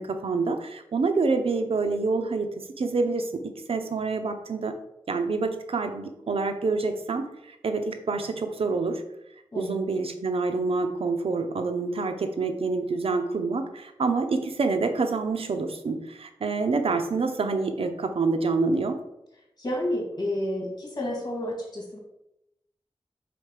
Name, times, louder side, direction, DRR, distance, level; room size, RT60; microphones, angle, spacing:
voice 1, 0.0-4.7 5.1-9.0 9.5-19.0, right 4 dB, 75° right, 7 dB, 0.7 m, -27 dB
voice 2, 19.6-22.0, left 1 dB, 45° left, 0 dB, 2.3 m, -30 dB
5.1 x 4.3 x 4.9 m, 0.83 s
wide cardioid pair, 75°, 10 cm